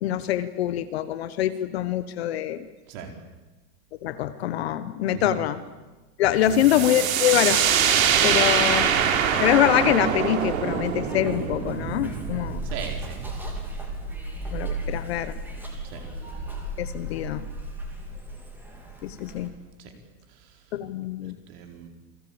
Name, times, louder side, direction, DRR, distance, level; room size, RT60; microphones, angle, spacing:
voice 1, 0.0-2.7 4.0-5.6 6.2-7.9 8.2-8.9 9.4-12.6 14.5-15.3 16.8-17.4 19.0-19.5 20.7-21.4, left 11 dB, 40° left, 12 dB, 1.2 m, -24 dB
voice 2, 6.5-7.0 8.3-8.5 12.6-13.3 15.8-16.0 19.8-19.9 20.3-20.6 21.2-21.9, right 6 dB, 35° right, 4 dB, 4.5 m, -39 dB
sound 1, 6.5-14.1, right 8 dB, 55° right, 4.1 m, -24 dB
Zipper (clothing), 7.8-19.5, right 1 dB, 5° right, 3.3 m, -37 dB
28.5 x 21.0 x 8.9 m, 1.2 s
supercardioid pair, 170°, 47 cm